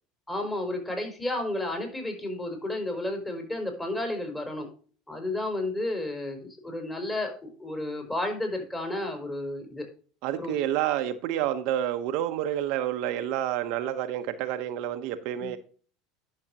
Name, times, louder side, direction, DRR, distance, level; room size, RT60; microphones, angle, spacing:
voice 1, 0.3-4.7 5.1-9.9 10.4-10.5 15.4-15.5, left 1 dB, 15° left, 4.5 m, -32 dB
voice 2, 10.2-15.6, right 11 dB, 65° right, 1.0 m, -29 dB
11.0 x 6.6 x 2.9 m
supercardioid pair, 105°, 0 cm